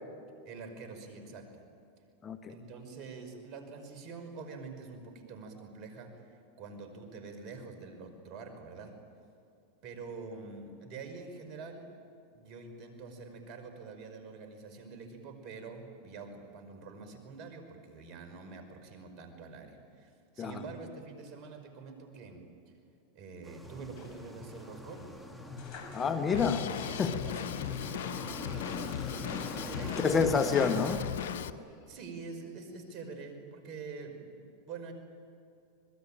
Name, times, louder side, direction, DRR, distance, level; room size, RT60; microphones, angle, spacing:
voice 1, 0.4-1.6 2.5-8.9 9.8-11.9 12.3-22.4 23.1-25.3 26.3-28.9 29.8-30.3 31.9-34.9, right 4 dB, 50° right, 7 dB, 5.3 m, -46 dB
sound 1, 23.4-31.0, equal, ahead, 2.0 m, -45 dB
sound 2, 23.6-26.7 27.0-27.1 28.9-31.6 32.2-33.0, left 2 dB, 50° left, 5.6 m, -47 dB
voice 2, 25.9-26.6 27.0-27.1 30.0-31.0, left 5 dB, 25° left, 8 dB, 1.7 m, -28 dB
Drum kit, 26.3-31.5, left 10 dB, 75° left, 1.0 m, -37 dB
26.0 x 21.0 x 9.0 m, 2.5 s
hypercardioid pair, 105°, 0 cm